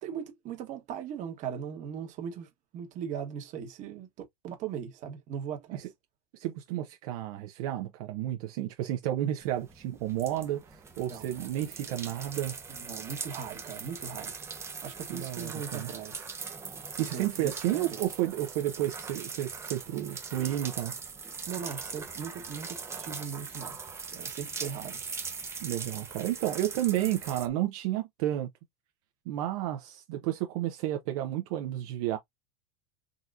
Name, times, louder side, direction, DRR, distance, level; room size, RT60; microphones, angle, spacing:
voice 1, 0.0-4.1 4.4-5.8 11.1-11.5 12.8-14.3 14.8-16.3 17.1-18.0 21.5-23.7 24.1-25.0, right 8 dB, 40° right, 1.3 m, -39 dB
voice 2, 6.3-12.5 15.1-15.9 17.0-20.9 25.6-28.5 29.3-32.2, right 13 dB, 65° right, 0.8 m, -31 dB
sound 1, 9.4-27.5, right 5 dB, 15° right, 0.7 m, -41 dB
3.8 x 2.8 x 2.4 m
supercardioid pair, 140°, 20 cm